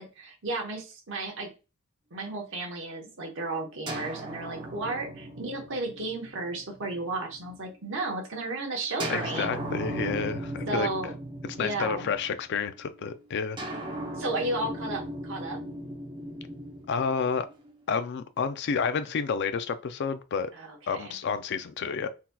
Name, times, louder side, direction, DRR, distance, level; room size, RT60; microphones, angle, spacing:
voice 1, 0.0-1.5 2.1-9.5 10.7-11.1 11.6-12.1 14.2-15.6 20.5-21.1, right 2 dB, 60° right, 1.0 m, -33 dB
sound 1, 3.9-7.7 9.0-12.6 13.6-17.7, right 1 dB, 20° right, 0.7 m, -37 dB
voice 2, 9.1-10.9 11.6-13.6 16.9-17.5 17.9-20.5 20.9-22.1, left 5 dB, 50° left, 0.4 m, -30 dB
3.9 x 2.8 x 2.2 m
head